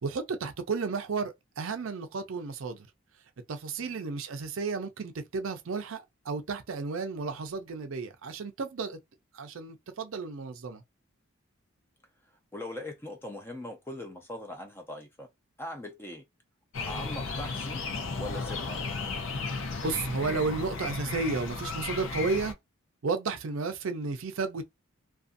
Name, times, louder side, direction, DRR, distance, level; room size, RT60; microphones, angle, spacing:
voice 1, 0.0-2.9 3.5-9.0 9.3-10.8 19.8-22.5 23.0-24.6, right 4 dB, 70° right, 0.5 m, -33 dB
voice 2, 12.5-15.3 15.6-16.2 16.9-17.8 18.2-18.8, left 1 dB, 10° left, 0.6 m, -40 dB
sound 1, 16.7-22.5, left 4 dB, 65° left, 0.5 m, -34 dB
2.5 x 2.3 x 2.5 m
head